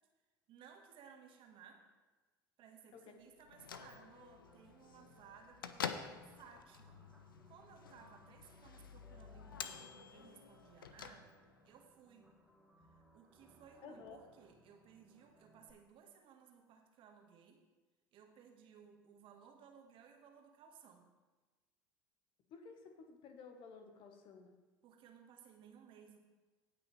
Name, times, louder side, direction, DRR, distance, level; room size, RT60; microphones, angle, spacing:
voice 1, 0.5-1.8 2.6-7.0 7.4-11.3 11.6-12.3 13.1-17.6 18.1-21.1 24.8-26.2, right 7 dB, 50° right, 3 dB, 1.5 m, -60 dB
Bell / Microwave oven, 3.4-11.7, left 7 dB, 85° left, 0.5 m, -49 dB
sound 1, 4.4-15.7, right 1 dB, ahead, 1.9 m, -66 dB
voice 2, 13.8-14.2 22.5-24.5, left 5 dB, 50° left, 6 dB, 1.3 m, -54 dB
17.0 x 6.1 x 3.3 m, 1.2 s
figure-of-eight pair, 70°, 11 cm